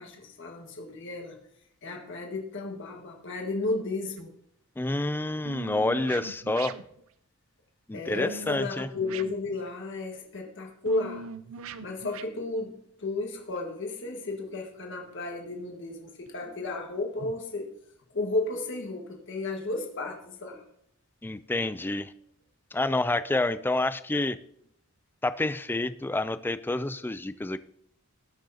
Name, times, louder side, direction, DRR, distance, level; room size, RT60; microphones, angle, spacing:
voice 1, 0.0-1.4 1.8-4.3 7.9-11.3 11.8-17.7 18.1-20.6, left 2 dB, 60° left, 1 dB, 1.6 m, -33 dB
sound 1, 4.2-4.3 5.5-7.0 8.2-8.7 9.0-9.7 10.9-12.3 13.6-13.7 16.3-16.4 17.2-17.3, right 4 dB, 65° right, 0.5 m, -41 dB
voice 2, 4.8-6.7 7.9-8.9 21.2-22.1 22.7-24.4 25.2-27.6, left 2 dB, 10° left, 14 dB, 0.3 m, -28 dB
19.0 x 6.4 x 2.8 m, 0.71 s
head